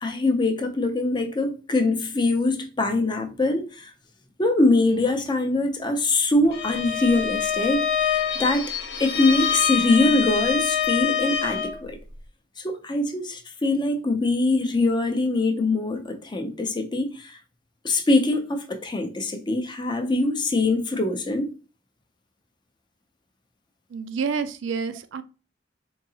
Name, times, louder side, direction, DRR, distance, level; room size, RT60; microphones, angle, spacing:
voice 1, 0.0-3.9 4.4-8.7 9.0-12.0 12.6-17.4 17.8-21.5, left 2 dB, 25° left, 0.5 m, -23 dB
Bowed string instrument, 6.5-11.8, left 7 dB, 65° left, 0.7 m, -25 dB
voice 2, 23.9-25.2, right 5 dB, 90° right, 0.4 m, -28 dB
3.8 x 2.8 x 2.8 m
head